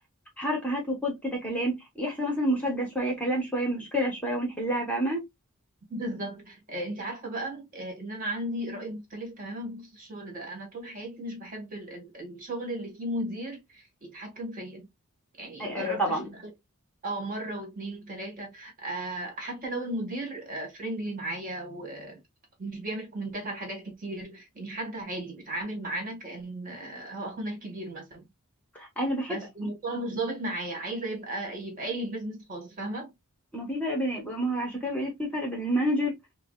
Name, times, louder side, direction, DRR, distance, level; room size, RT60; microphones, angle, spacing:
voice 1, 0.4-5.2 15.6-16.2 28.7-29.4 33.5-36.1, equal, 5° left, 1.0 m, -29 dB
voice 2, 5.9-14.9 15.4-16.5 17.0-22.2 22.6-28.3 29.3-33.1, right 1 dB, 40° right, 1.6 m, -35 dB
4.8 x 2.0 x 2.3 m
head